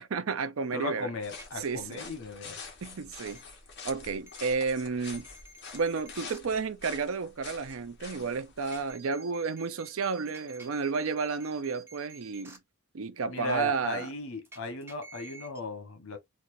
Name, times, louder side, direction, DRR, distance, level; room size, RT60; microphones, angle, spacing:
voice 1, 0.0-1.1 1.6-2.0 2.8-3.4 3.8-5.3 5.7-12.6 12.9-14.1, right 5 dB, 80° right, 0.5 m, -32 dB
voice 2, 0.7-2.6 13.3-16.2, left 3 dB, 85° left, 1.2 m, -36 dB
sound 1, 1.2-8.9, left 4 dB, 55° left, 1.4 m, -46 dB
sound 2, 1.3-1.5 3.3-3.4 4.3-4.4 5.0-6.4 8.6-12.6 14.4-15.6, right 3 dB, 10° right, 0.7 m, -51 dB
4.3 x 2.5 x 2.7 m
head